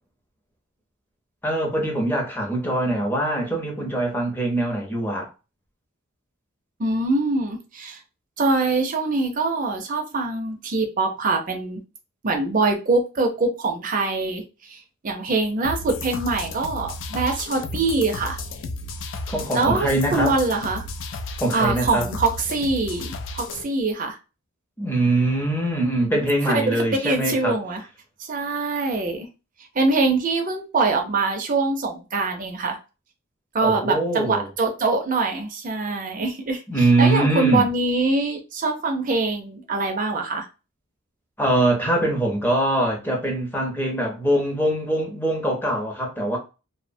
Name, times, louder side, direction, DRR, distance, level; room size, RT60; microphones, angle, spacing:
voice 1, 1.4-5.3 19.3-20.3 21.4-22.0 24.8-27.6 33.6-34.5 36.7-37.6 41.4-46.4, right 1 dB, 10° left, 0.6 m, -23 dB
voice 2, 6.8-8.0 8.4-11.8 12.2-18.4 19.5-20.9 21.5-24.2 26.4-27.9 28.2-29.3 29.7-32.8 33.5-40.5, right 3 dB, 40° right, 0.5 m, -24 dB
sound 1, 15.6-23.6, left 2 dB, 55° left, 0.3 m, -33 dB
2.7 x 2.0 x 2.5 m
head